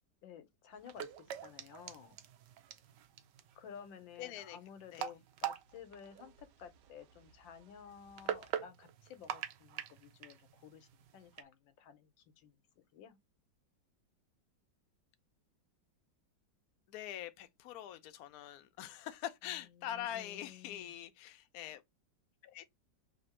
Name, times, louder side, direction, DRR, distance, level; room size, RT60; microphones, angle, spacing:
voice 1, 0.2-2.2 3.5-13.2 19.4-20.9, left 7 dB, 90° left, 1.5 m, -54 dB
sound 1, 0.7-11.4, right 10 dB, 70° right, 1.2 m, -45 dB
voice 2, 4.2-4.6 4.9-5.1 16.9-21.8 22.4-22.7, left 11 dB, 65° left, 0.9 m, -44 dB
3.4 x 2.8 x 4.2 m
omnidirectional pair, 2.0 m